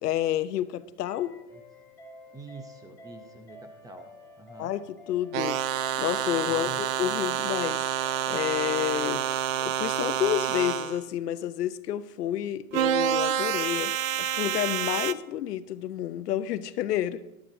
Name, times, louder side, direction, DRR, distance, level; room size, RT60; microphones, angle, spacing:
voice 1, 0.0-1.3 4.6-4.8 5.1-5.6 6.0-17.2, left 12 dB, 90° left, 0.8 m, -30 dB
sound 1, 1.0-9.2, left 3 dB, 5° left, 2.3 m, -50 dB
voice 2, 2.3-4.8 6.4-6.8, right 2 dB, 10° right, 0.5 m, -46 dB
sound 2, 5.3-11.0 12.7-15.1, right 11 dB, 60° right, 0.6 m, -28 dB
14.0 x 11.5 x 2.7 m
hypercardioid pair, 130°, 46 cm